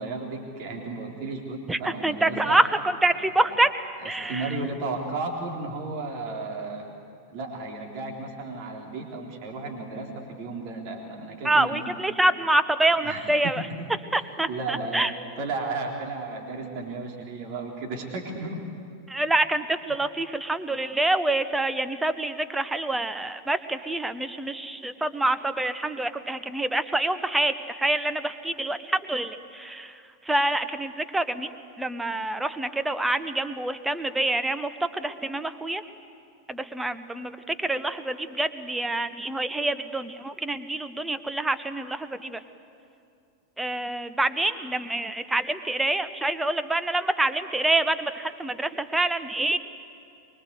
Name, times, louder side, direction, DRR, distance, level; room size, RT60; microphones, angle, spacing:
voice 1, 0.0-2.6 3.3-3.5 4.0-6.9 7.3-11.8 13.0-13.3 14.5-15.1 15.4-18.6, right 3 dB, 45° right, 2 dB, 3.6 m, -34 dB
voice 2, 1.7-3.7 4.0-4.5 11.4-13.6 14.1-15.1 19.1-31.5 31.8-35.8 36.5-42.4 43.6-49.6, right 2 dB, 5° right, 12 dB, 1.0 m, -26 dB
24.0 x 22.5 x 8.1 m, 2.6 s
figure-of-eight pair, 90°, 0 cm